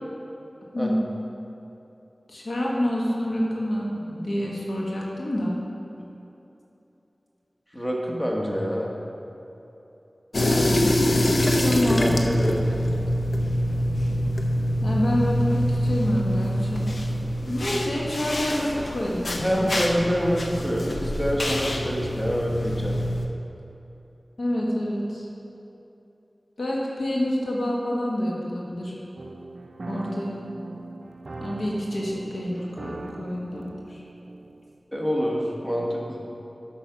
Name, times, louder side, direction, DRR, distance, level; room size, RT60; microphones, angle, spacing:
voice 1, 2.3-5.6 11.6-12.2 14.8-16.8 17.4-19.7 24.4-25.3 26.6-29.0 29.9-30.4 31.4-34.0, left 1 dB, 90° left, -4 dB, 1.4 m, -27 dB
voice 2, 7.7-8.9 12.0-12.8 19.4-23.0 34.9-36.2, equal, 10° left, -2 dB, 1.3 m, -26 dB
sound 1, 10.3-23.3, equal, 70° left, 0.7 m, -25 dB
sound 2, 29.2-34.8, right 2 dB, 65° right, 0.4 m, -40 dB
8.5 x 5.5 x 5.9 m, 3.0 s
wide cardioid pair, 65°, 0 cm